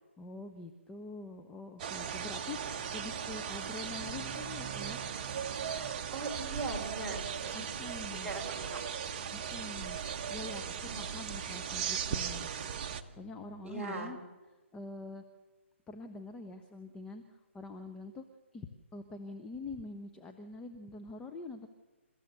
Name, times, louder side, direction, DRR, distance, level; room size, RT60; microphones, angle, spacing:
voice 1, 0.2-5.0 7.5-8.3 9.3-10.0 10.3-12.5 13.2-14.2 14.7-15.2 15.9-18.2 18.5-21.7, left 3 dB, 10° left, 7 dB, 0.9 m, -45 dB
sound 1, 1.8-13.0, right 7 dB, 35° right, 1.1 m, -38 dB
sound 2, 2.6-13.8, left 2 dB, 85° left, 6.0 m, -59 dB
voice 2, 5.7-7.7 8.1-8.8 10.9-11.0 13.6-14.2, right 2 dB, 10° right, -3 dB, 4.0 m, -40 dB
28.5 x 15.0 x 6.7 m, 1.2 s
hypercardioid pair, 150°, 7 cm